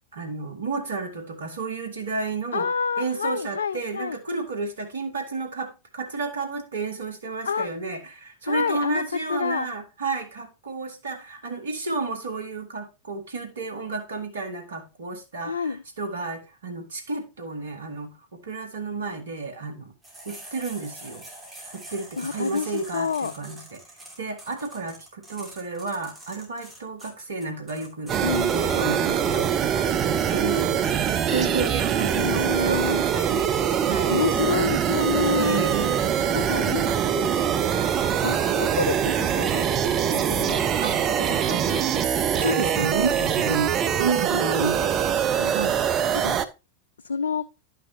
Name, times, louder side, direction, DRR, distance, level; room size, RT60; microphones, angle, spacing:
voice 1, 0.1-2.7 3.0-18.1 18.4-19.9 20.2-21.2 21.7-23.8 24.2-28.2 28.5-30.8 31.2-33.5 33.8-34.2 35.4-36.1 36.5-37.0 40.8-40.9 41.3-42.1 42.3-44.9 45.5-45.8, right 3 dB, 65° right, 1.7 m, -31 dB
voice 2, 2.5-4.2 7.4-7.7 8.4-9.0 9.3-9.7 15.4-15.8 22.2-23.3 28.2-28.7 32.1-33.0 34.1-35.7 36.3-37.0 38.2-39.6 40.0-41.0 41.6-41.7 42.7-43.1 44.3-44.4 45.4-45.7 46.1-46.4 47.0-47.4, left 5 dB, 70° left, 0.3 m, -28 dB
sound 1, 20.0-28.2, right 1 dB, 10° right, 2.7 m, -44 dB
sound 2, 28.1-46.5, right 8 dB, 30° right, 0.6 m, -23 dB
11.0 x 5.8 x 2.8 m
figure-of-eight pair, 90°, 0 cm